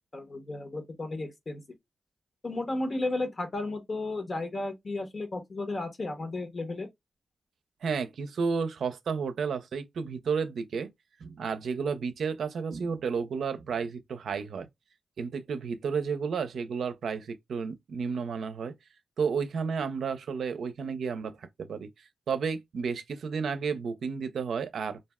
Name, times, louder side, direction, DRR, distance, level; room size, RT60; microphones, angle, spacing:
voice 1, 0.0-1.6 2.4-6.9, left 2 dB, 50° left, 1.0 m, -33 dB
voice 2, 7.8-10.9 11.2-14.7 15.2-18.7 19.2-21.9 22.3-25.0, right 5 dB, 85° right, 0.4 m, -32 dB
2.6 x 2.1 x 3.4 m
cardioid pair, 60°, 0 cm